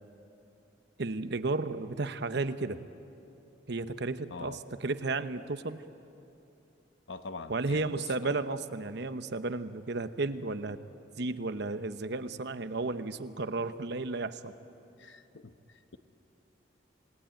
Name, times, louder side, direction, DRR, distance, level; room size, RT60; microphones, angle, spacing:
voice 1, 1.0-2.8 3.7-5.8 7.5-10.8 11.2-14.5, right 3 dB, 65° right, 11 dB, 0.9 m, -33 dB
voice 2, 7.1-8.3 15.0-16.0, left 4 dB, 80° left, 9 dB, 1.0 m, -44 dB
28.5 x 18.5 x 9.1 m, 2.8 s
head